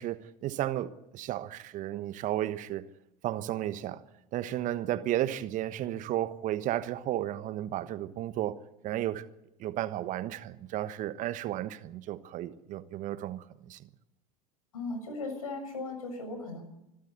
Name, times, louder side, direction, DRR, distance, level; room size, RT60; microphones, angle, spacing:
voice 1, 0.0-2.8 3.2-4.0 4.3-8.6 8.8-9.3 9.6-13.8, right 13 dB, 45° right, 1.3 m, -33 dB
voice 2, 14.7-16.6, left 3 dB, 80° left, 6.9 m, -37 dB
26.0 x 13.0 x 8.3 m
hypercardioid pair, 80°, 18 cm